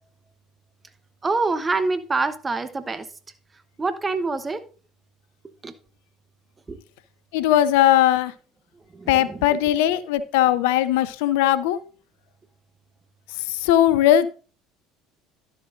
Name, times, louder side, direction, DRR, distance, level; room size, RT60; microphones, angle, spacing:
voice 1, 1.2-3.1 3.8-4.6 5.6-5.7 6.7-6.8 8.9-9.4, right 3 dB, 20° right, 0.9 m, -25 dB
voice 2, 7.3-8.3 9.1-11.8 13.3-14.3, left 12 dB, 65° left, 0.4 m, -19 dB
11.5 x 7.4 x 2.5 m
figure-of-eight pair, 65°, 0 cm